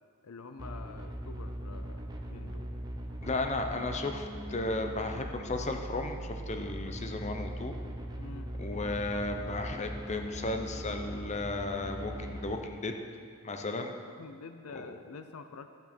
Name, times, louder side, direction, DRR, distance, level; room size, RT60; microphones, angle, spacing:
voice 1, 0.2-2.7 8.2-8.5 14.1-15.7, left 4 dB, 75° left, 8 dB, 0.5 m, -47 dB
Distorsion Bass, 0.6-12.6, right 1 dB, 20° right, 0.8 m, -40 dB
voice 2, 3.2-7.7 8.6-12.9 13.4-13.9 14.7-14.9, left 2 dB, 30° left, 5 dB, 0.8 m, -34 dB
13.0 x 8.5 x 4.4 m, 2.2 s
head